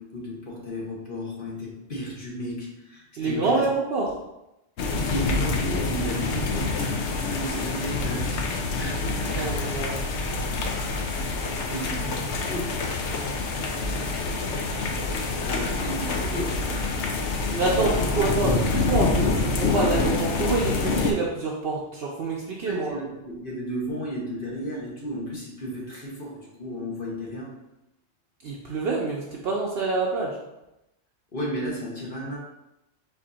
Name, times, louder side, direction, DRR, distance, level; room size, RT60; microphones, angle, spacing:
voice 1, 0.0-3.7 5.1-6.8 7.1-9.9 11.7-12.8 15.4-17.4 22.7-27.6 31.3-32.4, equal, 50° left, -4 dB, 1.1 m, -34 dB
voice 2, 3.2-4.1 9.3-10.0 17.5-23.0 28.4-30.4, right 3 dB, 60° right, -3 dB, 0.8 m, -26 dB
sound 1, 4.8-21.1, left 3 dB, 70° left, 0.9 m, -26 dB
4.3 x 2.8 x 3.8 m, 0.91 s
omnidirectional pair, 1.2 m